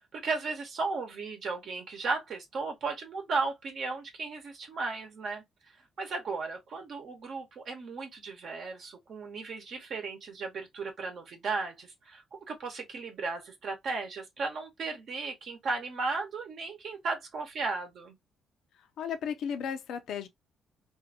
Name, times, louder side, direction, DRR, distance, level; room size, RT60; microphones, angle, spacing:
voice 1, 0.1-18.2, right 4 dB, 60° right, 0.9 m, -35 dB
voice 2, 19.0-20.3, left 7 dB, 75° left, 0.5 m, -34 dB
2.6 x 2.5 x 2.6 m
cardioid pair, 90°, 0 cm